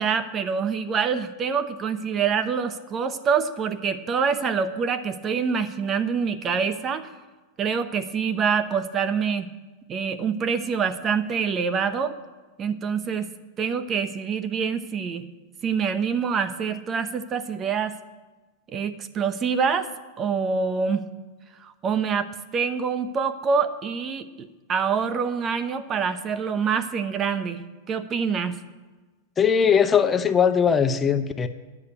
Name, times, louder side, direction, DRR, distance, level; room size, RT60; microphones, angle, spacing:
voice 1, 0.0-7.1 7.6-9.5 9.9-12.2 12.6-13.3 13.6-15.3 15.6-18.0 18.7-19.9 20.2-21.0 21.6-27.6 27.9-28.6, right 6 dB, 30° right, 11 dB, 0.7 m, -26 dB
voice 2, 29.4-31.5, left 7 dB, 20° left, 9 dB, 0.7 m, -20 dB
9.9 x 6.5 x 8.5 m, 1.2 s
hypercardioid pair, 110°, 0 cm